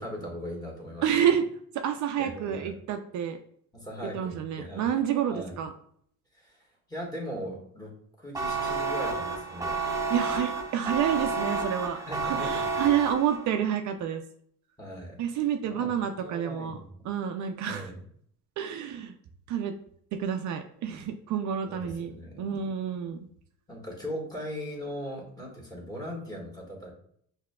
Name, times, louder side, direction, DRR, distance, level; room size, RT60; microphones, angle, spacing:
voice 1, 0.0-1.3 2.2-2.7 3.7-4.9 5.3-5.5 6.3-6.6 6.9-7.9 8.2-9.8 11.9-12.8 14.8-15.2 15.6-15.9 16.2-16.9 17.7-18.0 21.6-22.5 23.7-26.9, equal, 10° left, -2 dB, 1.5 m, -39 dB
voice 2, 1.0-1.4 1.7-3.4 4.1-5.7 10.1-14.2 15.2-17.9 18.6-19.1 19.5-19.7 20.1-22.1 22.4-23.3, right 9 dB, 65° right, 6 dB, 0.5 m, -29 dB
sound 1, 8.3-13.6, right 4 dB, 10° right, 0.6 m, -31 dB
5.8 x 2.8 x 2.2 m, 0.66 s
cardioid pair, 110°, 32 cm